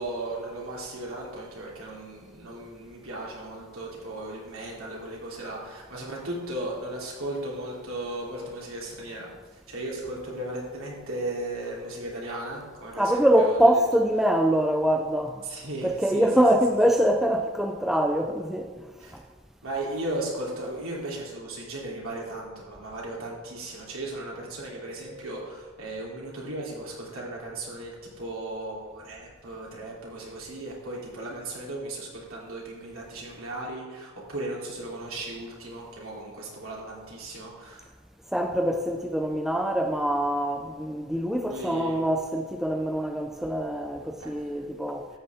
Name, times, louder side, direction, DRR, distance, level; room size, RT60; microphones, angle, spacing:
voice 1, 0.0-9.3 9.7-13.6 15.4-16.4 19.0-19.1 19.6-37.9 41.4-42.0 44.2-44.7, right 1 dB, 70° right, -4 dB, 3.1 m, -36 dB
voice 2, 13.0-15.4 15.8-18.7 38.3-45.1, equal, ahead, 4 dB, 0.4 m, -24 dB
13.0 x 8.5 x 3.5 m, 1.4 s
head